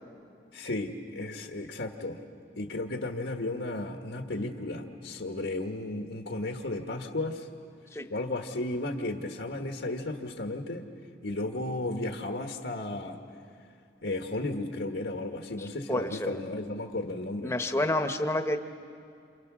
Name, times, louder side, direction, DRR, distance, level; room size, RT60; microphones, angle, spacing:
voice 1, 0.5-2.2 2.5-7.5 8.1-10.9 11.2-13.2 14.0-17.5, left 2 dB, 80° left, 3 dB, 1.5 m, -34 dB
voice 2, 15.6-16.4 17.4-18.6, left 1 dB, 15° left, 7 dB, 1.0 m, -29 dB
28.5 x 28.0 x 6.2 m, 2.6 s
head